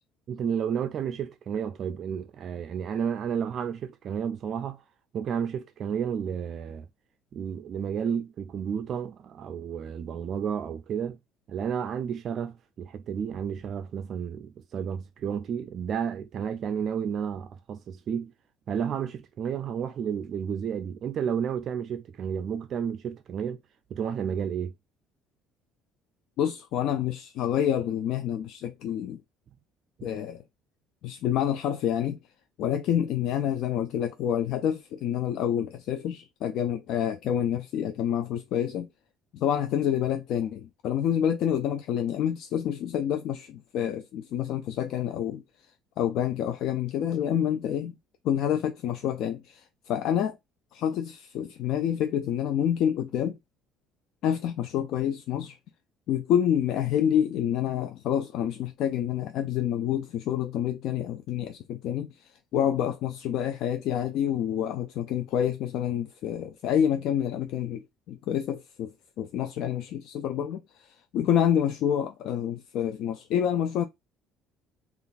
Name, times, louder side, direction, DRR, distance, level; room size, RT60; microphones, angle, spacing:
voice 1, 0.3-4.8 5.1-6.9 7.3-11.2 11.5-18.3 18.7-23.6 23.9-24.7 30.0-30.1, right 7 dB, 50° right, 0.4 m, -31 dB
voice 2, 26.4-29.2 30.0-30.4 31.0-32.2 32.6-38.9 39.3-45.4 46.0-48.0 48.2-50.4 50.7-53.4 54.2-55.6 56.1-68.9 69.2-73.8, left 9 dB, 70° left, 0.4 m, -28 dB
3.3 x 2.4 x 3.9 m
cardioid pair, 115°, 0 cm